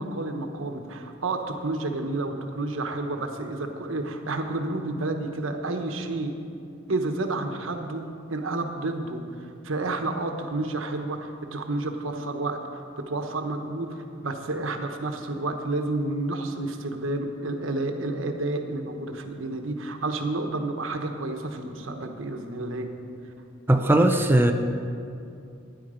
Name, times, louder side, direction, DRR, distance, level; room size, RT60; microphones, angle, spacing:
voice 1, 0.0-6.4 6.9-22.9, right 2 dB, 90° right, 5 dB, 1.1 m, -30 dB
voice 2, 23.7-24.5, right 1 dB, 10° right, 4 dB, 0.5 m, -18 dB
13.0 x 10.0 x 5.0 m, 2.5 s
head